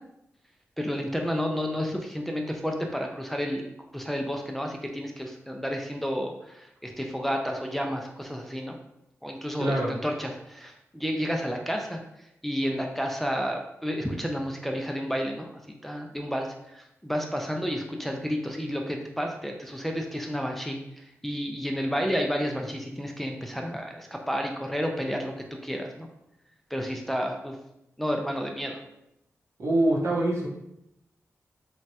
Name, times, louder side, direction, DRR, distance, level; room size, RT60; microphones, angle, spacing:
voice 1, 0.8-3.7 3.9-8.8 9.2-12.0 12.4-26.1 26.7-27.6 28.0-28.8, equal, 5° left, 1 dB, 0.4 m, -31 dB
voice 2, 9.6-9.9 29.6-30.5, right 1 dB, 65° right, -4 dB, 0.9 m, -24 dB
3.0 x 2.1 x 2.8 m, 0.82 s
cardioid pair, 55°, 5 cm